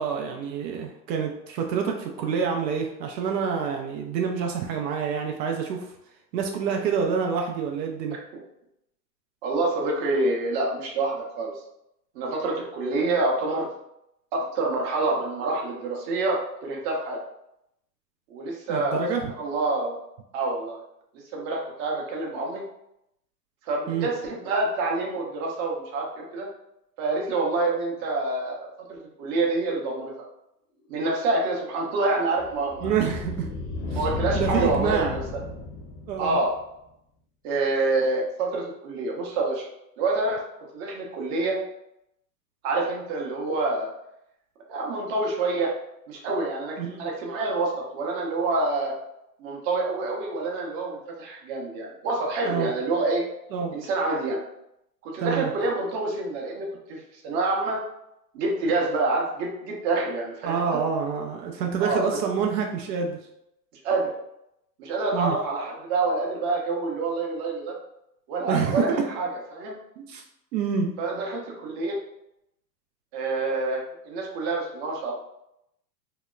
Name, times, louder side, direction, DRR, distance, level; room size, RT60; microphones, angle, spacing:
voice 1, 0.0-5.9 6.3-8.2 18.7-19.3 23.9-24.1 32.8-33.5 33.9-34.0 34.3-35.1 36.1-36.4 46.8-47.0 52.4-52.7 53.5-53.7 55.2-55.5 60.4-63.2 65.1-65.3 68.5-69.0 70.1-70.2 70.5-70.9, right 6 dB, 80° right, 2 dB, 0.6 m, -27 dB
voice 2, 9.4-11.5 12.1-13.7 14.3-17.2 18.3-19.1 19.4-20.0 20.3-20.8 21.1-22.6 23.6-26.5 27.0-30.1 30.9-32.9 33.9-35.4 36.2-36.5 37.4-39.7 40.0-40.4 40.7-41.6 42.6-43.9 44.7-45.7 46.1-48.9 49.4-53.2 53.7-54.4 55.0-57.8 58.3-60.6 61.8-62.2 63.8-64.1 64.8-67.7 68.3-69.8 71.0-72.0 73.1-75.1, right 3 dB, 40° right, -1 dB, 0.7 m, -27 dB
sound 1, 31.2-36.6, left 3 dB, 55° left, 0.7 m, -33 dB
2.8 x 2.0 x 2.2 m, 0.81 s
hypercardioid pair, 120°, 49 cm